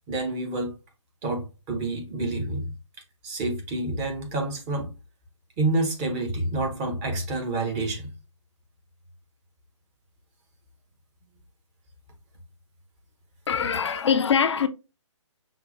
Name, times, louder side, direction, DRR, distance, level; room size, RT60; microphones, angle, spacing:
voice 1, 0.1-0.7 1.2-2.7 3.2-4.9 5.6-8.1, right 2 dB, 20° right, 0.8 m, -28 dB
voice 2, 13.5-14.7, left 7 dB, 60° left, 0.4 m, -23 dB
5.6 x 2.2 x 2.5 m
figure-of-eight pair, 140°, 16 cm